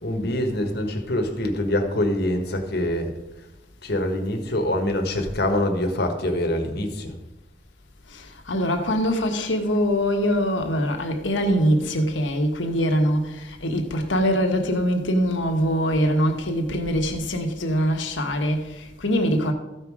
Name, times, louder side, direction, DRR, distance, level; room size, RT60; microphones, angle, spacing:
voice 1, 0.0-3.2 3.8-7.1, left 1 dB, 60° left, 1.5 m, -25 dB
voice 2, 8.1-19.5, equal, 85° left, 1.5 m, -23 dB
14.0 x 5.6 x 4.8 m
head